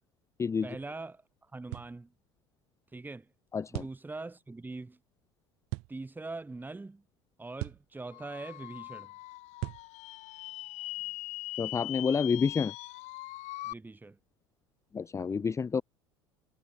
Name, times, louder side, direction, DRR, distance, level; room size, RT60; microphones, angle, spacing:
voice 1, 0.6-2.1 2.9-3.3 3.7-5.0 5.9-7.0 7.4-9.1 13.6-14.2, right 3 dB, 10° right, 4.5 m, -42 dB
sound 1, 1.7-2.0 3.7-4.0 5.7-5.9 7.6-7.9 9.6-9.9, right 28 dB, 55° right, 3.0 m, -37 dB
voice 2, 3.5-3.8 11.6-12.7 14.9-15.8, left 5 dB, 20° left, 0.8 m, -29 dB
sound 2, 8.1-13.7, left 18 dB, 50° left, 5.5 m, -41 dB
figure-of-eight pair, 70°, 15 cm